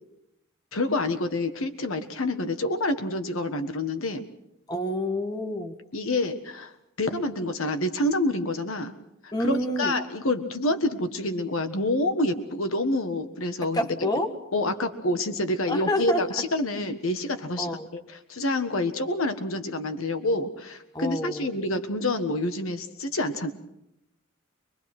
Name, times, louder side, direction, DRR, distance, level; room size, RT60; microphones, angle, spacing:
voice 1, 0.7-4.2 5.9-6.7 7.0-8.9 9.2-13.8 14.5-23.5, left 2 dB, 75° left, 8 dB, 1.5 m, -27 dB
voice 2, 4.7-5.8 9.3-9.9 13.7-14.3 15.7-16.2 17.6-17.9 20.9-21.4, left 1 dB, 20° left, 6 dB, 1.6 m, -28 dB
23.5 x 22.5 x 6.0 m, 0.81 s
head